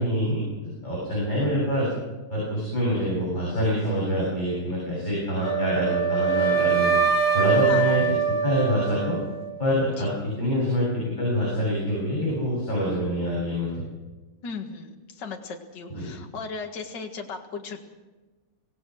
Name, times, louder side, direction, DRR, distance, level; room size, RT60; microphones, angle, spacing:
voice 1, 0.0-1.9 2.3-6.9 7.3-8.2 8.4-9.2 9.6-13.8 15.9-16.0, equal, 20° left, -6 dB, 8.1 m, -26 dB
Wind instrument woodwind instrument, 5.4-9.5, right 6 dB, 25° right, 2.3 m, -23 dB
voice 2, 7.7-8.0 10.0-10.1 14.4-17.8, left 4 dB, 60° left, 3 dB, 2.4 m, -36 dB
25.0 x 17.5 x 6.4 m, 1.2 s
omnidirectional pair, 2.3 m